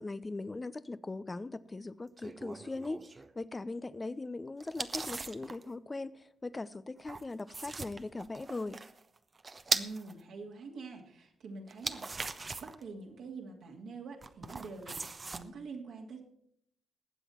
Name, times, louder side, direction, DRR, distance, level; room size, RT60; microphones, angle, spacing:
voice 1, 0.0-3.0 3.4-8.8, left 2 dB, 30° left, 0.8 m, -40 dB
sound 1, 2.2-3.3 4.6-5.6 7.0-10.1 11.7-12.8 14.2-15.4, right 3 dB, 35° right, 1.0 m, -39 dB
voice 2, 9.7-12.3 12.6-16.2, right 4 dB, 70° right, 2.6 m, -46 dB
20.5 x 8.1 x 4.4 m
hypercardioid pair, 45°, 0 cm